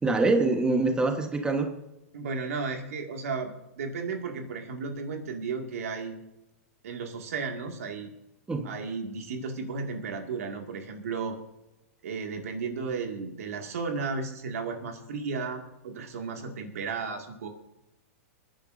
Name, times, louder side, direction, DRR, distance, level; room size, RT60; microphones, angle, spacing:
voice 1, 0.0-1.7 8.5-8.7, right 3 dB, 10° right, 5 dB, 1.3 m, -25 dB
voice 2, 2.1-3.5 3.8-6.2 6.8-8.1 8.6-11.4 12.0-17.5, right 4 dB, 75° right, 4 dB, 2.2 m, -34 dB
26.5 x 10.5 x 2.7 m, 0.93 s
hypercardioid pair, 120°, 8 cm